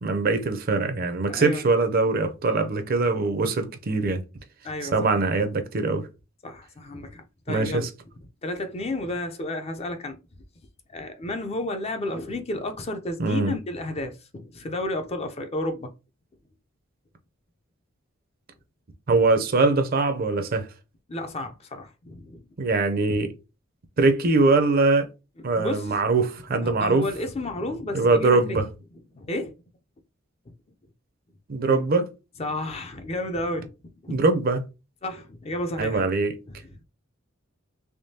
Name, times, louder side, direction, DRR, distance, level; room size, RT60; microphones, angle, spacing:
voice 1, 0.0-4.2 4.9-6.1 7.5-7.9 13.2-13.5 19.1-20.7 22.6-23.3 24.0-25.1 25.4-27.1 27.9-28.7 31.5-32.1 34.1-34.6 35.8-36.3, right 3 dB, 45° right, 0.5 m, -22 dB
voice 2, 1.3-1.6 4.6-5.0 6.4-7.9 8.4-10.2 10.9-15.9 21.1-22.7 25.5-25.9 26.6-28.6 29.1-29.5 32.4-33.7 34.0-34.2 35.0-36.0 36.5-36.8, left 1 dB, 30° left, 0.5 m, -32 dB
3.5 x 3.1 x 2.7 m
head